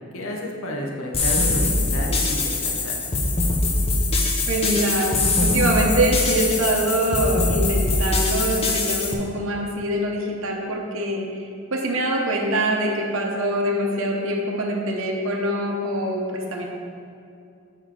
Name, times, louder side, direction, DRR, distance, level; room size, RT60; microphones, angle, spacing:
voice 1, 0.1-3.0, left 1 dB, 70° left, 0 dB, 0.8 m, -31 dB
sound 1, 1.1-9.1, left 2 dB, 25° left, 0.5 m, -22 dB
voice 2, 4.5-5.1 5.4-11.2 11.7-16.7, right 1 dB, 65° right, -1 dB, 0.8 m, -24 dB
7.8 x 3.3 x 4.8 m, 2.5 s
head